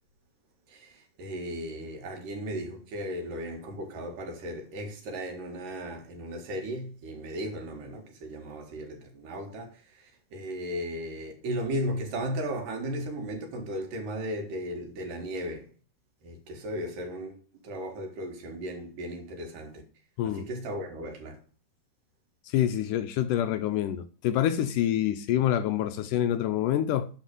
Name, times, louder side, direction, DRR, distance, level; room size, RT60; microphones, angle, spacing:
voice 1, 0.7-15.7 16.2-17.4 17.6-19.8 20.2-21.4, equal, 70° right, 3.5 m, -36 dB
voice 2, 22.5-27.1, left 11 dB, 75° left, 2.0 m, -26 dB
11.5 x 4.6 x 7.7 m
omnidirectional pair, 4.0 m